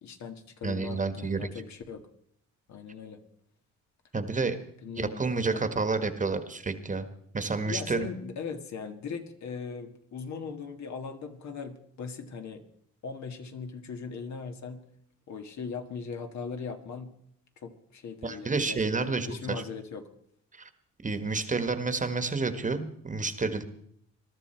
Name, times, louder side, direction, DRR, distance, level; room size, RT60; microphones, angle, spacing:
voice 1, 0.0-2.0 2.7-3.2 4.8-5.6 7.7-12.6 13.0-14.8 15.3-17.1 17.6-20.1, left 5 dB, 65° left, 5 dB, 1.9 m, -39 dB
voice 2, 0.6-1.5 4.1-4.6 5.0-7.1 7.3-8.1 18.2-19.6 20.5-20.7 21.0-23.6, right 4 dB, 25° right, 10 dB, 1.5 m, -30 dB
21.5 x 12.5 x 4.5 m, 0.70 s
cardioid pair, 90°, 30 cm